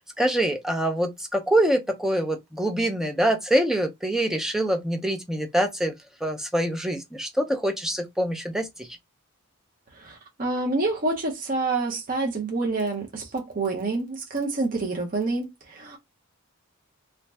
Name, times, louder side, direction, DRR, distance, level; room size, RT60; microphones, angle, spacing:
voice 1, 0.0-5.9 6.2-8.9, right 1 dB, ahead, 0.4 m, -25 dB
voice 2, 10.0-16.0, right 3 dB, 40° right, 0.7 m, -27 dB
2.6 x 2.1 x 3.2 m
head